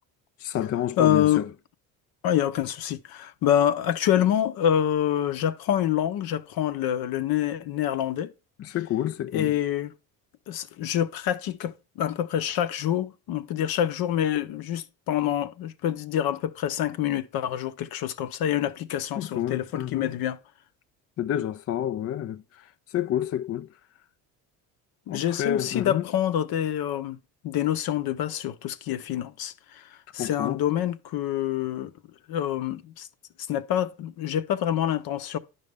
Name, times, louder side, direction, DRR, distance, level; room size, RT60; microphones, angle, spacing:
voice 1, 0.4-1.5 8.6-9.5 19.2-20.1 21.2-23.7 25.1-26.0 30.2-30.6, left 11 dB, 35° left, 0.5 m, -29 dB
voice 2, 1.0-1.4 2.2-8.3 9.3-9.9 10.5-20.4 25.1-27.2 27.4-29.9 30.1-31.9 32.3-33.1 33.5-35.4, left 10 dB, 60° left, 0.9 m, -26 dB
10.5 x 5.5 x 3.4 m
supercardioid pair, 75°, 40 cm